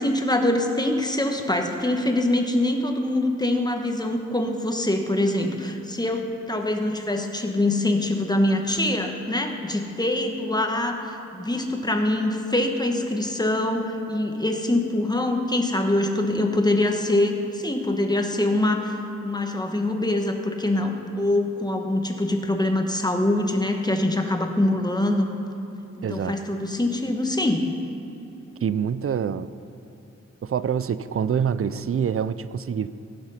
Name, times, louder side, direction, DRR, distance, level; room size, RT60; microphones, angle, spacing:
voice 1, 0.0-19.0 19.2-25.3 26.1-27.7, left 1 dB, 15° left, 3 dB, 1.2 m, -24 dB
voice 2, 26.0-26.4 28.6-29.5 30.4-32.9, right 7 dB, 50° right, 15 dB, 0.4 m, -26 dB
16.0 x 6.0 x 5.7 m, 3.0 s
wide cardioid pair, 60°, 29 cm